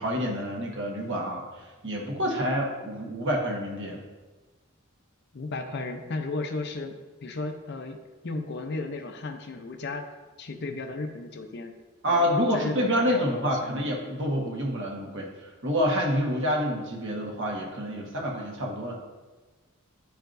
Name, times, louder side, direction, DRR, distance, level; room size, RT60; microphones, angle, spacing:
voice 1, 0.0-4.0 12.0-19.0, equal, 55° right, 0 dB, 1.2 m, -28 dB
voice 2, 5.3-8.0 8.2-10.1 10.4-11.8 12.1-12.3 12.5-13.9 14.5-14.6, left 3 dB, 50° left, 5 dB, 0.5 m, -35 dB
10.5 x 4.6 x 2.6 m, 1.3 s
head